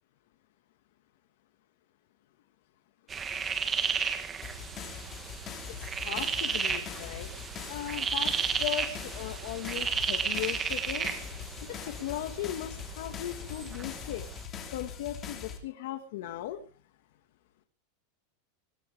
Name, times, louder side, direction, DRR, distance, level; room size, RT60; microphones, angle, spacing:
sound 1, 3.1-14.4, right 6 dB, 15° right, 1.4 m, -34 dB
sound 2, 4.4-15.6, left 7 dB, 20° left, 2.8 m, -42 dB
voice 1, 5.7-7.3 7.7-11.1 11.6-14.3 14.7-16.6, left 12 dB, 55° left, 7 dB, 1.7 m, -37 dB
21.5 x 16.5 x 3.5 m, 0.37 s
supercardioid pair, 175°, 0 cm